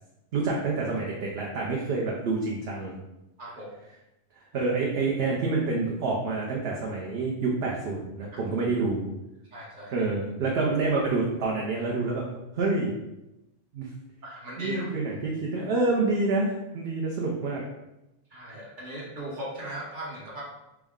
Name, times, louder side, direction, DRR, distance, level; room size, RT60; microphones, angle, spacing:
voice 1, 0.3-2.9 4.5-9.0 9.9-12.2 12.5-12.9 13.7-13.9 14.6-17.6, right 3 dB, 60° right, -2 dB, 0.8 m, -27 dB
voice 2, 9.5-10.0 14.2-14.9 18.3-20.4, right 1 dB, 40° right, -4 dB, 1.2 m, -38 dB
4.6 x 2.1 x 3.5 m, 0.92 s
omnidirectional pair, 1.3 m